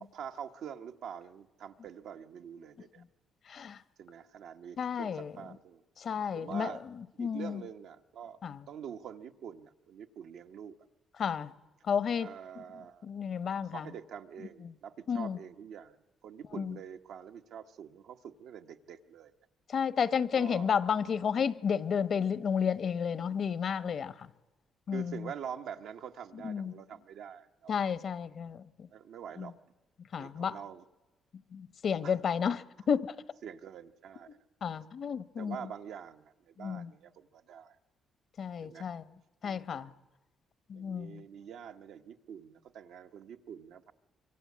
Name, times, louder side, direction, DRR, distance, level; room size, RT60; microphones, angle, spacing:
voice 1, 0.0-3.0 4.0-5.8 6.3-6.9 7.1-8.4 8.7-10.8 12.1-13.1 13.6-19.3 20.3-20.7 24.9-27.7 28.5-29.5 30.2-30.8 32.0-32.2 32.4-32.5 33.4-34.4 35.4-37.8 38.6-38.9 39.4-39.9 40.7-43.9, right 8 dB, 80° right, 1.2 m, -46 dB
voice 2, 4.8-5.3 6.0-6.7 7.2-7.6 8.4-8.6 11.2-11.5 11.9-12.3 13.0-13.9 15.1-15.4 16.6-16.8 19.7-24.1 24.9-25.2 26.4-26.7 27.7-28.9 29.4-29.5 30.1-30.6 31.5-33.1 34.6-35.6 36.6-36.9 38.4-39.0 39.4-39.9 40.7-41.2, left 7 dB, 55° left, 1.0 m, -32 dB
25.0 x 23.5 x 8.6 m
cardioid pair, 90°, 0 cm